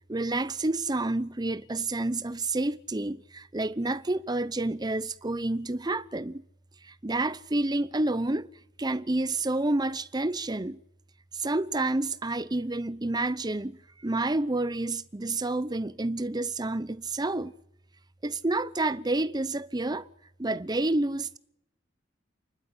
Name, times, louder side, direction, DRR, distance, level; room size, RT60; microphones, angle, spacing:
voice 1, 0.1-6.4 6.8-8.5 8.8-10.8 11.3-17.5 18.2-20.1 20.4-21.4, right 2 dB, 20° right, 0.8 m, -29 dB
28.5 x 12.0 x 9.9 m
head